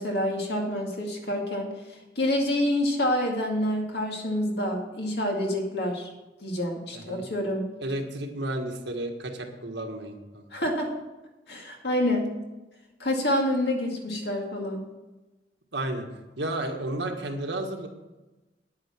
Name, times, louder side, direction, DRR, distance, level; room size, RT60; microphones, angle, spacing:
voice 1, 0.0-6.1 6.4-7.7 10.5-10.9 11.5-12.3 13.0-14.8, left 1 dB, 65° left, 1 dB, 2.3 m, -27 dB
voice 2, 6.9-7.3 7.8-10.5 15.7-17.9, right 1 dB, 85° right, 3 dB, 1.6 m, -32 dB
9.7 x 9.0 x 6.2 m, 1.1 s
head